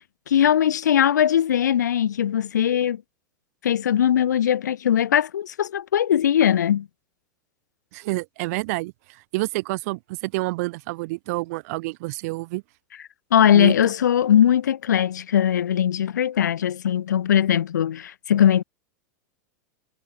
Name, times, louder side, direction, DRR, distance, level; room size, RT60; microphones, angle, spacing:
voice 1, 0.3-3.0 3.6-6.9 13.3-18.6, left 9 dB, 80° left, 1.9 m, -20 dB
voice 2, 7.9-12.6 13.5-13.7, right 23 dB, 60° right, 0.9 m, -28 dB
hypercardioid pair, 100°, 9 cm